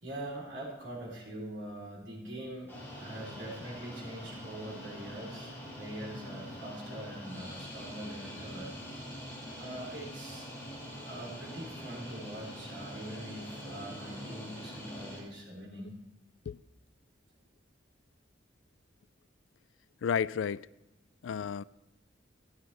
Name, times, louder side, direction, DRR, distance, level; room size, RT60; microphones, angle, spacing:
voice 1, 0.0-2.7 3.0-8.7 9.6-10.5 11.0-16.0, right 1 dB, 85° right, 3.7 m, -43 dB
sound 1, 2.7-15.2, equal, 10° left, 4.5 m, -44 dB
voice 2, 20.0-20.7 21.2-21.6, left 7 dB, 85° left, 0.3 m, -31 dB
13.5 x 11.0 x 3.3 m
head